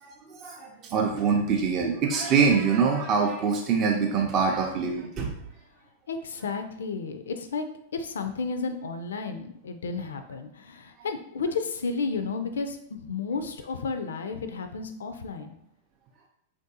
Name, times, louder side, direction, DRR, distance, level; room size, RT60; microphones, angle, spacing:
voice 1, 0.0-5.3, right 5 dB, 35° right, 0 dB, 0.5 m, -24 dB
voice 2, 6.1-7.7 7.9-15.5, left 4 dB, 70° left, 8 dB, 0.3 m, -32 dB
3.3 x 2.6 x 2.7 m, 0.73 s
figure-of-eight pair, 95°, 0 cm